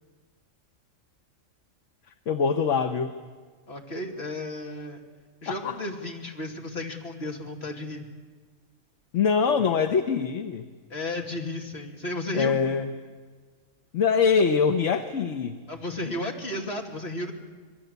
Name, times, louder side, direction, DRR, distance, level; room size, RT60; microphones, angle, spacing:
voice 1, 2.3-3.1 5.5-5.8 9.1-10.7 12.3-12.9 13.9-15.6, left 5 dB, 70° left, 7 dB, 1.3 m, -23 dB
voice 2, 3.7-5.0 5.4-8.1 10.9-12.5 15.7-17.3, left 2 dB, 50° left, 1 dB, 3.0 m, -33 dB
26.5 x 22.0 x 8.1 m, 1.5 s
omnidirectional pair, 1.3 m